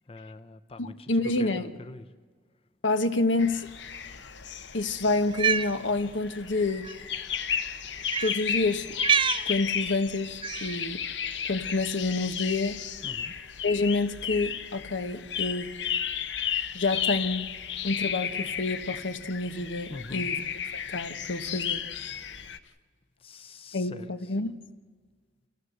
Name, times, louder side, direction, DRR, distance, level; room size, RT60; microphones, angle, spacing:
voice 1, 0.1-1.1 1.4-2.0 13.0-13.3 19.9-20.3 23.2-24.3, left 2 dB, 30° left, 10 dB, 0.7 m, -44 dB
voice 2, 0.8-1.7 2.8-3.7 4.7-6.9 8.2-8.9 9.5-11.0 11.5-12.8 13.6-15.7 16.7-17.5 17.8-20.4 20.7-21.8 23.7-24.5, left 3 dB, 90° left, 9 dB, 1.3 m, -28 dB
sound 1, 3.4-22.6, left 8 dB, 65° left, 1.0 m, -34 dB
Cat, 5.2-5.7 6.8-6.9 8.1-8.4 9.0-9.5 10.4-10.8, right 6 dB, 30° right, 0.6 m, -26 dB
27.0 x 16.0 x 8.0 m, 1.5 s
head